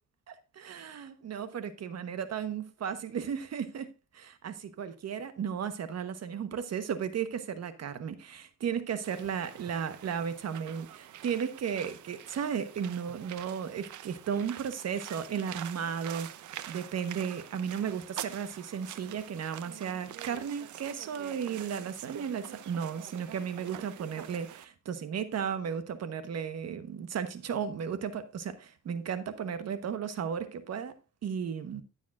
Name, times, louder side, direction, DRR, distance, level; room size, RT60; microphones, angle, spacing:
voice 1, 0.3-16.3 16.7-31.0 31.2-31.8, right 7 dB, 60° right, 1.2 m, -35 dB
sound 1, 9.0-24.6, right 11 dB, 75° right, 0.8 m, -46 dB
14.0 x 7.2 x 2.5 m
cardioid pair, 90°, 30 cm